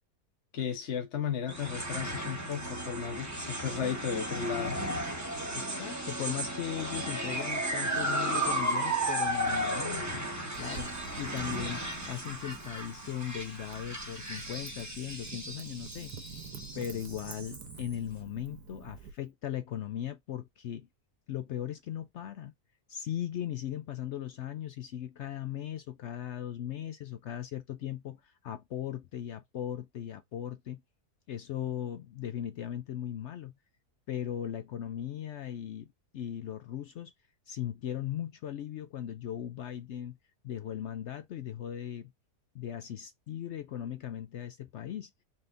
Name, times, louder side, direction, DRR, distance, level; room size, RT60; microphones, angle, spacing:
voice 1, 0.5-4.9, left 7 dB, 50° left, 1.2 m, -34 dB
sound 1, 1.5-17.9, right 1 dB, 15° right, 0.9 m, -35 dB
voice 2, 5.5-10.3 10.6-16.1 16.7-20.9 21.3-22.5 22.9-30.8 31.3-33.5 34.1-35.9 36.1-37.1 37.5-40.2 40.4-42.1 42.5-45.1, left 10 dB, 70° left, 0.6 m, -38 dB
Wind / Fire, 10.5-19.1, right 6 dB, 80° right, 1.5 m, -48 dB
4.3 x 3.4 x 2.5 m
omnidirectional pair, 1.7 m